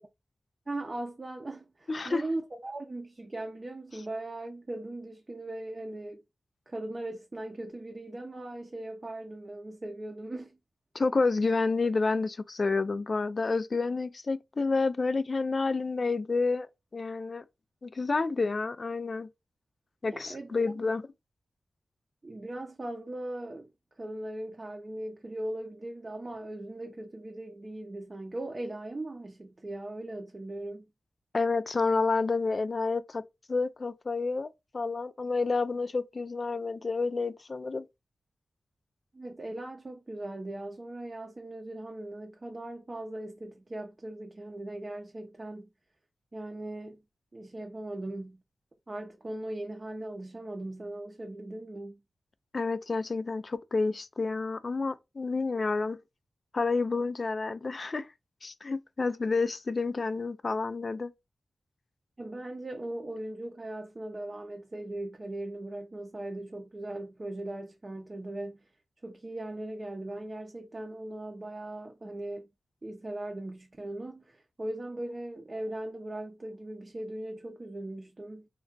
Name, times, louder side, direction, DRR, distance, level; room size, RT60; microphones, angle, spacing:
voice 1, 0.7-6.2 6.7-10.6 20.1-20.6 22.2-23.7 24.0-30.9 39.1-45.7 46.3-47.0 47.3-48.4 48.9-52.0 62.2-68.6 69.0-72.5 72.8-78.5, right 1 dB, 40° right, 0.5 m, -39 dB
voice 2, 1.9-2.2 10.9-16.7 16.9-17.4 17.8-19.3 20.0-21.0 31.3-33.2 33.5-34.5 34.7-37.9 52.5-56.0 56.5-58.1 58.4-61.1, left 3 dB, 55° left, 0.3 m, -29 dB
2.3 x 2.2 x 3.8 m
cardioid pair, 45°, 0 cm